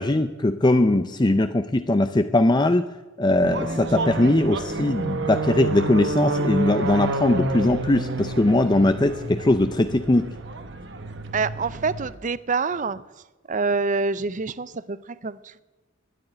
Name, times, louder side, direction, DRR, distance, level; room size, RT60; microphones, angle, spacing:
voice 1, 0.0-2.9 3.2-10.3, left 2 dB, 20° left, 0.6 m, -20 dB
sound 1, 3.4-12.1, right 2 dB, 60° right, 1.3 m, -29 dB
voice 2, 11.3-13.0 13.5-15.6, right 4 dB, 40° right, 0.6 m, -26 dB
12.5 x 10.5 x 9.8 m
head